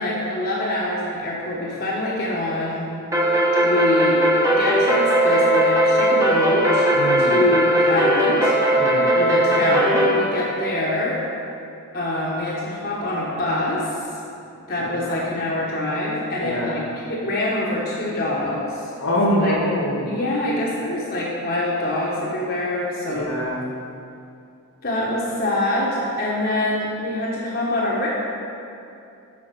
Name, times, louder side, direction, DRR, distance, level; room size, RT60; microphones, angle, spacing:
voice 1, 0.0-2.9 3.6-6.8 7.2-11.2 11.9-14.0 14.7-18.9 19.4-19.5 20.1-23.3 24.8-28.1, left 1 dB, 45° left, -5 dB, 1.1 m, -25 dB
sound 1, 3.1-10.2, equal, 15° right, 0.9 m, -18 dB
voice 2, 6.9-7.4 8.8-9.1 14.8-15.2 16.4-16.8 19.0-20.1 23.1-23.6, equal, 70° left, -2 dB, 1.5 m, -24 dB
8.6 x 5.6 x 5.2 m, 2.7 s
head